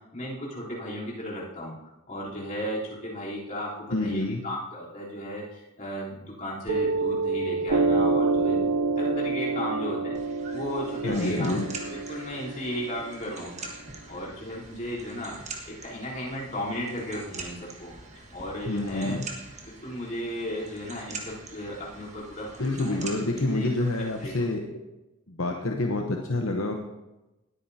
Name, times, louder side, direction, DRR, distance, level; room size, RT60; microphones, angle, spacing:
voice 1, 0.1-1.7 2.1-8.6 9.0-13.7 14.1-15.4 15.6-17.9 18.3-19.2 19.7-23.1 23.4-23.7 24.2-24.5, equal, 35° left, -7 dB, 3.5 m, -35 dB
voice 2, 3.9-4.4 11.0-11.7 18.7-19.3 22.6-24.6 25.3-26.8, left 2 dB, 65° left, 2 dB, 0.9 m, -27 dB
Piano, 6.7-13.7, right 3 dB, 85° right, 0.6 m, -27 dB
sound 1, 10.1-24.4, right 3 dB, 30° right, 1.5 m, -44 dB
20.0 x 9.0 x 2.8 m, 1.0 s
head